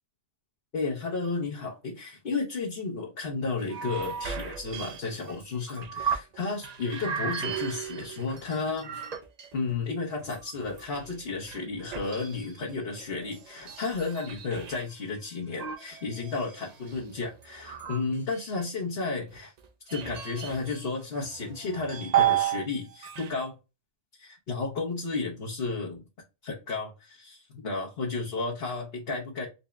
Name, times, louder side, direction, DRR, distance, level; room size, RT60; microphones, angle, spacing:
voice 1, 0.7-9.1 9.5-19.5 19.8-23.5 24.2-26.0 26.4-29.5, left 4 dB, 55° left, 1.1 m, -33 dB
sound 1, 3.6-6.4 6.6-9.7 10.2-14.8 15.5-18.6 19.3-20.9 21.2-22.7 22.9-23.3, right 9 dB, 55° right, 0.4 m, -33 dB
4.0 x 3.3 x 2.2 m
omnidirectional pair, 1.3 m